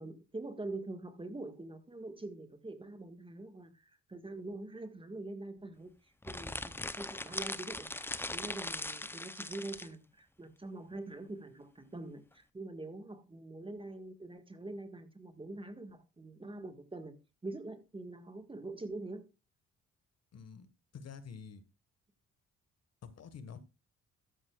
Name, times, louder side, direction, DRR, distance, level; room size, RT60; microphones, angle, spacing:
voice 1, 0.0-17.2 17.4-19.3, right 2 dB, 15° right, 1.7 m, -44 dB
sound 1, 6.2-9.9, left 2 dB, 5° left, 0.6 m, -40 dB
voice 2, 20.3-21.6 23.0-23.6, left 6 dB, 55° left, 1.5 m, -48 dB
13.0 x 11.0 x 2.4 m
cardioid pair, 90°, 30 cm